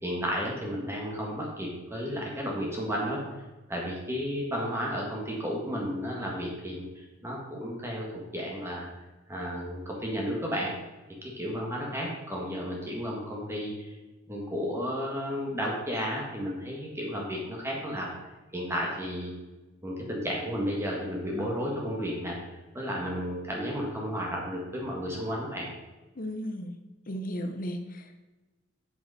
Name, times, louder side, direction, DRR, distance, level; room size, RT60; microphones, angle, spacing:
voice 1, 0.0-3.2 3.7-8.1 8.3-8.9 9.3-10.7 11.2-13.9 14.3-18.1 18.5-19.3 19.8-22.4 22.7-25.7, equal, 15° right, -2 dB, 1.8 m, -33 dB
voice 2, 26.2-26.8 27.1-28.2, equal, 50° left, 7 dB, 0.9 m, -35 dB
8.9 x 8.2 x 4.2 m, 1.1 s
head